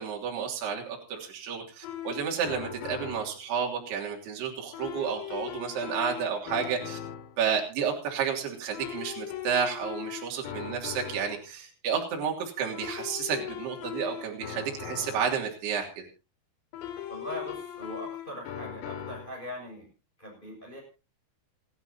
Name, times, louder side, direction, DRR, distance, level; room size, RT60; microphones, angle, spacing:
voice 1, 0.0-7.0 7.4-16.1, right 7 dB, 55° right, 0 dB, 4.8 m, -31 dB
sound 1, 1.8-3.4 4.7-7.4 8.7-11.4 12.7-15.4 16.7-19.4, left 10 dB, 90° left, 5.1 m, -39 dB
voice 2, 17.1-19.9 20.2-20.8, left 1 dB, 10° left, 0 dB, 6.3 m, -41 dB
27.5 x 11.0 x 2.8 m, 0.31 s
omnidirectional pair, 6.0 m